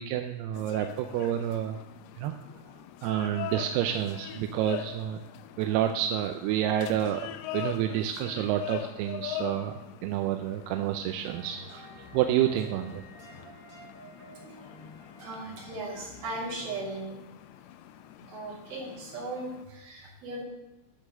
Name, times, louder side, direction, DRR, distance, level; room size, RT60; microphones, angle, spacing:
voice 1, 0.0-1.8 2.2-2.3 3.0-5.2 5.6-13.0 18.5-18.6, right 11 dB, 80° right, 6 dB, 2.4 m, -29 dB
sound 1, 0.5-19.7, left 11 dB, 85° left, 2.4 m, -43 dB
sound 2, 11.2-17.0, right 1 dB, 30° right, 1.6 m, -50 dB
voice 2, 15.2-17.2 18.3-20.4, right 2 dB, 60° right, -5 dB, 4.5 m, -37 dB
11.5 x 5.2 x 6.5 m, 1.0 s
omnidirectional pair, 4.8 m